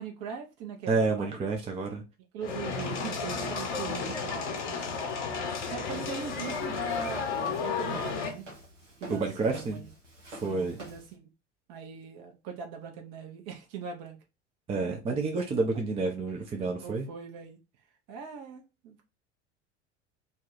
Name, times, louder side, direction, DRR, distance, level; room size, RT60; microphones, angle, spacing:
voice 1, 0.0-1.5 2.3-5.0 5.6-8.5 9.0-9.9 10.4-11.3 11.7-14.2 14.9-15.0 16.5-17.6 18.1-19.0, right 4 dB, 45° right, 0.9 m, -40 dB
voice 2, 0.9-2.0 9.1-9.8 10.3-10.7 14.7-17.1, right 3 dB, 15° right, 0.5 m, -29 dB
sound 1, 2.4-8.3, left 5 dB, 70° left, 1.0 m, -33 dB
Walk footsteps, 5.9-11.1, right 1 dB, 85° right, 0.9 m, -48 dB
2.6 x 2.3 x 3.9 m
figure-of-eight pair, 75°, 36 cm